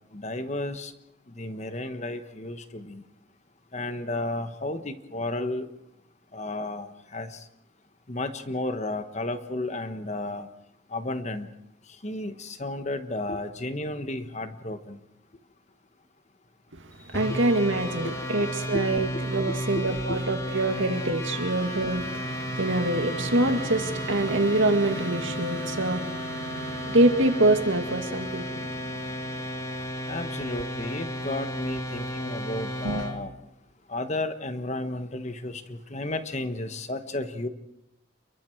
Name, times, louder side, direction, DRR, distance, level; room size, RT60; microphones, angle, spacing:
voice 1, 0.1-0.9 1.4-3.0 3.7-5.7 6.3-7.4 8.1-10.5 10.9-11.5 12.0-15.0 17.3-17.4 18.0-18.1 18.4-18.5 18.7-18.8 19.1-19.2 19.5-19.8 20.1-20.2 30.1-33.3 33.9-37.5, left 2 dB, 35° left, 9 dB, 1.2 m, -33 dB
sound 1, 17.1-33.2, equal, 15° left, 2.3 m, -33 dB
voice 2, 17.1-29.0 32.8-33.1, right 2 dB, 65° right, 6 dB, 2.3 m, -25 dB
29.5 x 23.0 x 4.6 m, 0.83 s
head